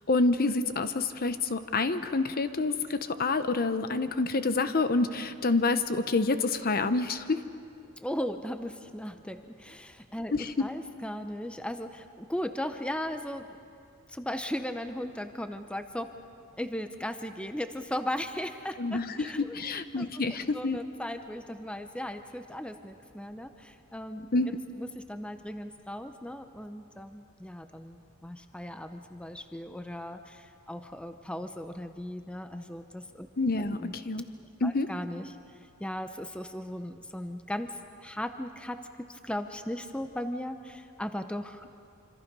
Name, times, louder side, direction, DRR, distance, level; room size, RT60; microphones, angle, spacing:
voice 1, 0.1-7.5 10.3-10.5 18.8-20.8 24.3-24.6 33.4-34.3 34.6-34.9, left 3 dB, 45° left, 11 dB, 0.8 m, -28 dB
voice 2, 8.0-13.5 14.1-16.1 16.6-24.3 24.8-33.3 33.8-34.0 34.6-41.7, left 1 dB, 5° left, 8 dB, 0.7 m, -37 dB
26.5 x 26.0 x 5.4 m, 2.5 s
head